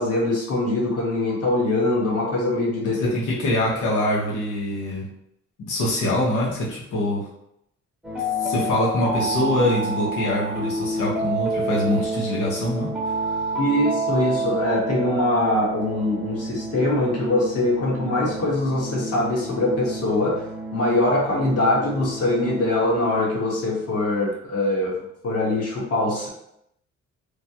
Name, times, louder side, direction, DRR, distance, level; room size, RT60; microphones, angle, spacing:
voice 1, 0.0-3.1 13.6-20.4 20.7-26.3, left 2 dB, 50° left, -4 dB, 1.3 m, -23 dB
voice 2, 3.0-5.1 5.6-7.2 8.4-13.5, left 1 dB, 80° left, -5 dB, 1.2 m, -24 dB
sound 1, 8.0-23.8, right 1 dB, 5° right, 1.0 m, -29 dB
3.3 x 2.2 x 2.8 m, 0.79 s
cardioid pair, 90°, 30 cm